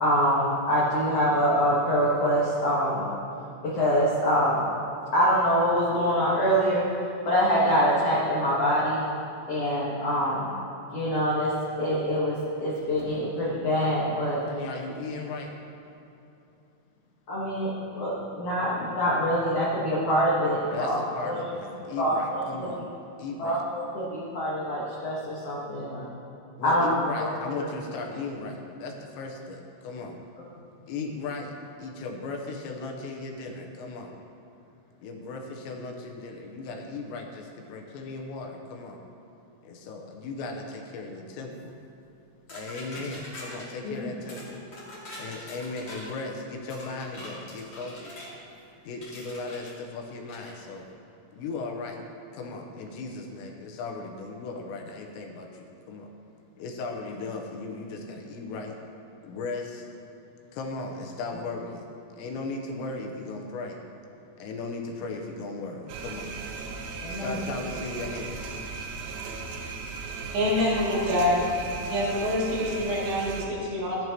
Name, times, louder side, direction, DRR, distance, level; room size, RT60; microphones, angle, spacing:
voice 1, 0.0-3.1 3.6-4.6 5.1-6.8 7.2-9.0 9.5-10.5 10.9-14.4 17.3-21.4 22.0-22.7 23.4-26.1 26.6-27.6 43.8-44.1 67.0-67.4, equal, 60° left, -8 dB, 1.6 m, -25 dB
voice 2, 14.5-15.6 20.7-22.9 23.2-23.6 26.6-30.2 30.9-34.1 35.0-39.0 39.6-41.8 42.5-44.7 45.2-48.3 48.8-50.9 51.3-52.0 52.3-56.1 56.6-58.8 59.2-59.9 60.5-61.8 62.1-63.8 64.4-66.3 67.1-68.6, left 3 dB, 85° left, 2 dB, 3.1 m, -37 dB
sound 1, 42.5-43.7 44.3-44.5 44.7-46.2 46.7-48.3 49.0-49.7 50.3-50.5, left 1 dB, 35° left, 1.8 m, -43 dB
sound 2, 65.9-73.5, right 4 dB, 85° right, 2.1 m, -37 dB
voice 3, 70.3-71.4 71.9-74.0, left 1 dB, 70° right, -7 dB, 4.7 m, -26 dB
14.0 x 10.5 x 3.0 m, 2.8 s
omnidirectional pair, 5.1 m